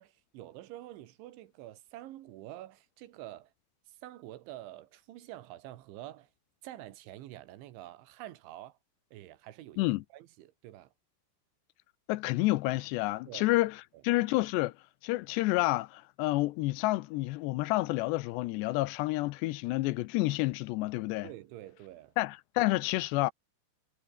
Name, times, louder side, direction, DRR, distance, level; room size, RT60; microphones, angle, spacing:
voice 1, 0.0-3.5 3.9-6.3 6.6-8.8 9.1-9.9 10.1-10.9 13.3-13.5 21.2-22.1, right 14 dB, 90° right, 3.9 m, -47 dB
voice 2, 12.1-13.8 14.0-14.7 15.0-21.3 22.2-23.3, left 19 dB, 80° left, 2.7 m, -29 dB
omnidirectional pair, 5.2 m